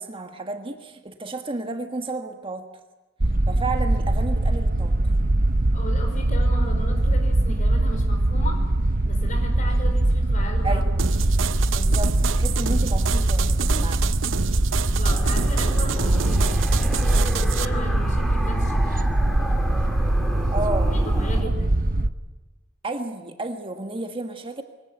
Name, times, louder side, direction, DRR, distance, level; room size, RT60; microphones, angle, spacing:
voice 1, 0.0-2.7 3.5-5.1 10.6-11.1 11.6-14.0 20.5-21.0 21.4-21.5 22.8-24.6, right 2 dB, 30° right, 5 dB, 1.5 m, -32 dB
sound 1, 3.2-22.1, right 1 dB, 45° right, 0.9 m, -22 dB
voice 2, 5.7-8.6 9.0-10.8 13.7-13.9 15.0-17.1 17.4-19.0 20.9-21.8, left 1 dB, 45° left, 5 dB, 5.0 m, -36 dB
sound 2, 11.0-17.6, right 7 dB, 90° right, 0.7 m, -29 dB
sound 3, 15.0-21.4, equal, ahead, 2.7 m, -32 dB
23.5 x 17.5 x 9.3 m, 1.2 s
head